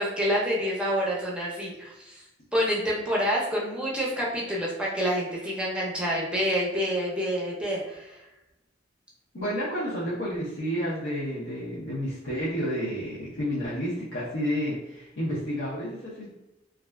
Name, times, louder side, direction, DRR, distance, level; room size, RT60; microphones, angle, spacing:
voice 1, 0.0-2.2 2.5-8.2, equal, 5° right, -4 dB, 0.6 m, -27 dB
voice 2, 9.3-16.3, equal, 70° left, -9 dB, 0.7 m, -30 dB
3.2 x 2.4 x 2.2 m, 0.96 s
head